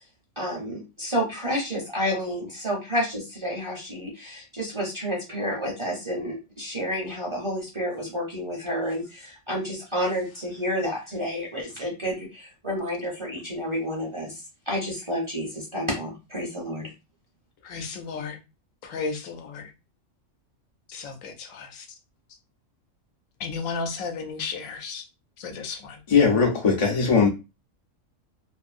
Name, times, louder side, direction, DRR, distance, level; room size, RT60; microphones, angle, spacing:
voice 1, 0.4-16.9, equal, 30° right, 0.6 m, -30 dB
voice 2, 17.6-18.4 18.8-19.7 20.9-21.9 23.4-25.0 25.4-26.0, left 5 dB, 80° left, 1.0 m, -34 dB
voice 3, 26.1-27.3, left 5 dB, 45° left, 0.4 m, -19 dB
2.6 x 2.5 x 2.4 m
omnidirectional pair, 1.4 m